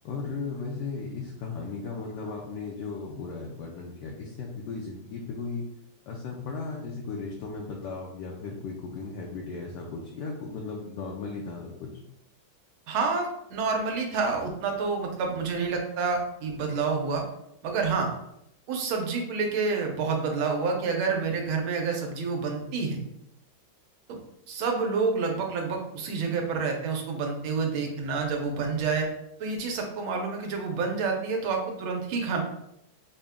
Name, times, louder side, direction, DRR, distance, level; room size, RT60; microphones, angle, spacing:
voice 1, 0.0-5.7 6.1-11.9, left 4 dB, 70° left, -2 dB, 1.0 m, -36 dB
voice 2, 12.9-17.2 17.6-18.1 18.7-23.0 24.1-24.2 24.5-29.1 29.4-32.4, right 4 dB, 90° right, 2 dB, 1.6 m, -28 dB
4.0 x 2.2 x 3.4 m, 0.79 s
omnidirectional pair, 2.2 m